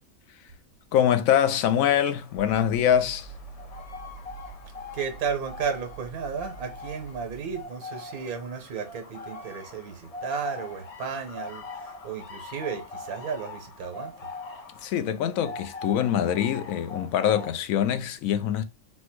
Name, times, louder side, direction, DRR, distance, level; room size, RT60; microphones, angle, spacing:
voice 1, 0.9-3.3 14.8-18.6, left 9 dB, 75° left, 1.0 m, -24 dB
sound 1, 1.4-17.5, left 3 dB, 45° left, 0.5 m, -42 dB
sound 2, 2.4-7.6, right 4 dB, 5° left, 1.0 m, -45 dB
voice 2, 4.9-14.1, right 6 dB, 80° right, 1.4 m, -33 dB
4.3 x 2.3 x 4.4 m
omnidirectional pair, 1.5 m